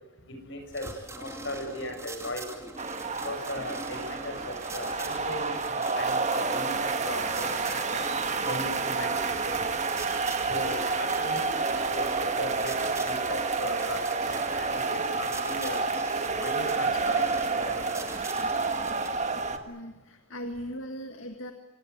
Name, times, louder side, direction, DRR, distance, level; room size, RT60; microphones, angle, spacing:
voice 1, 0.4-2.7 3.2-8.0 8.4-9.6 10.5-15.9 16.3-17.3 17.6-18.1, left 1 dB, 60° left, 5 dB, 6.8 m, -38 dB
sound 1, 0.7-19.1, right 2 dB, 15° right, 2.7 m, -43 dB
sound 2, 2.8-19.6, right 4 dB, 35° right, 1.7 m, -29 dB
voice 2, 19.3-21.5, equal, 80° left, 6 dB, 1.8 m, -40 dB
25.5 x 18.5 x 9.5 m, 1.1 s
head